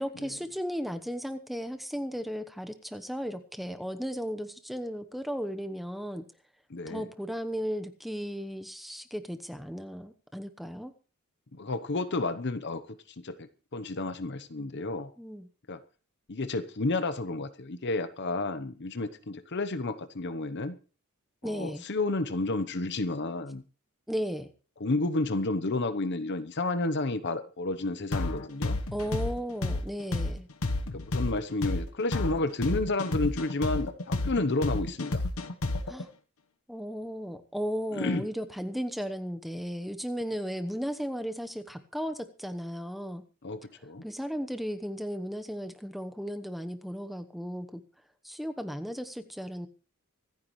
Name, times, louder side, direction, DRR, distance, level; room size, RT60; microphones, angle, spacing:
voice 1, 0.0-6.2 6.9-10.9 15.2-15.5 21.4-21.8 24.1-24.5 28.9-30.5 35.9-36.1 36.7-43.2 44.0-47.8 48.2-49.7, equal, ahead, 8 dB, 1.0 m, -35 dB
voice 2, 6.7-7.1 11.5-12.8 13.2-15.1 15.7-15.8 16.3-20.8 21.4-23.6 24.8-28.8 30.9-35.2 37.9-38.3 43.4-44.0, left 2 dB, 55° left, 11 dB, 0.9 m, -31 dB
sound 1, 28.1-36.0, left 2 dB, 75° left, 1.2 m, -30 dB
25.5 x 9.5 x 3.2 m, 0.37 s
head